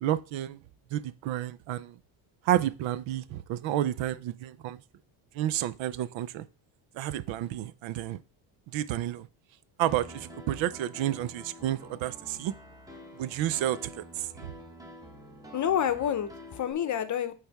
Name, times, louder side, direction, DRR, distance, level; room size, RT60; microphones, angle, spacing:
voice 1, 0.0-0.6 0.9-1.9 2.5-4.8 5.4-6.4 7.0-8.2 8.7-9.3 9.8-12.5 13.2-13.8 14.2-14.5, right 12 dB, 85° right, 0.6 m, -30 dB
Piano, 9.9-16.7, equal, 10° right, 0.9 m, -48 dB
voice 2, 15.5-17.3, left 9 dB, 40° left, 0.7 m, -28 dB
8.7 x 3.4 x 3.4 m
cardioid pair, 135°, 45 cm